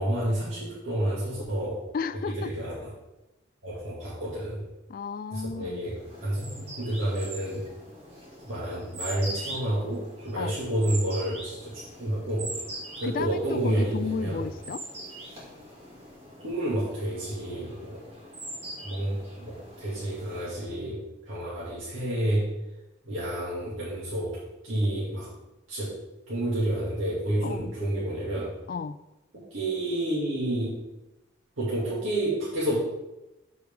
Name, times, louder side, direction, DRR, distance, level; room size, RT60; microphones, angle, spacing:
voice 1, 0.0-1.9 2.2-2.9 3.6-4.6 5.3-7.6 8.5-12.5 13.0-14.4 16.4-18.0 18.8-22.5 23.0-25.3 25.7-25.9 26.3-28.6 29.3-30.7 31.6-32.8, right 1 dB, 80° right, -9 dB, 2.2 m, -30 dB
voice 2, 1.9-2.5 4.9-5.8 10.3-10.5 13.0-14.8 27.4-27.7 28.7-29.0, left 5 dB, 45° left, 14 dB, 0.3 m, -33 dB
sound 1, 5.8-20.8, right 1 dB, 30° right, 2.3 m, -42 dB
12.5 x 4.7 x 3.6 m, 1.0 s
head